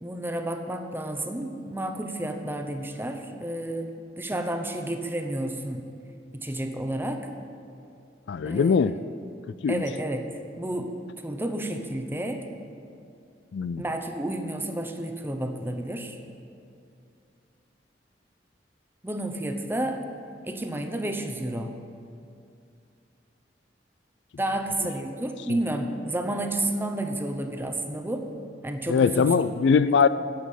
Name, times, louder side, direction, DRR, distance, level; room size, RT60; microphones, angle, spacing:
voice 1, 0.0-5.8 6.3-7.3 8.4-8.9 9.7-10.3 10.6-10.9 11.2-12.4 13.8-16.2 19.0-20.0 20.4-21.7 24.4-28.3 28.6-29.3, right 1 dB, 10° right, 5 dB, 0.8 m, -31 dB
voice 2, 8.3-9.0 9.6-9.8 13.5-13.8 25.5-25.6 28.9-30.1, left 5 dB, 70° left, 15 dB, 0.4 m, -21 dB
10.5 x 7.2 x 9.1 m, 2.4 s
head